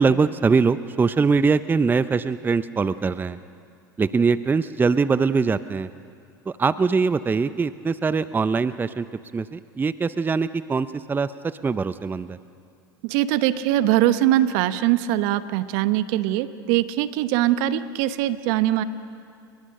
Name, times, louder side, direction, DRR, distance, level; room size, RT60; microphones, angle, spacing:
voice 1, 0.0-3.4 4.0-5.9 6.5-9.1 9.3-11.3 11.6-12.4, right 4 dB, 15° right, 15 dB, 0.6 m, -22 dB
voice 2, 13.0-18.8, right 13 dB, 60° right, 13 dB, 1.0 m, -22 dB
30.0 x 22.0 x 6.6 m, 2.4 s
hypercardioid pair, 85°, 12 cm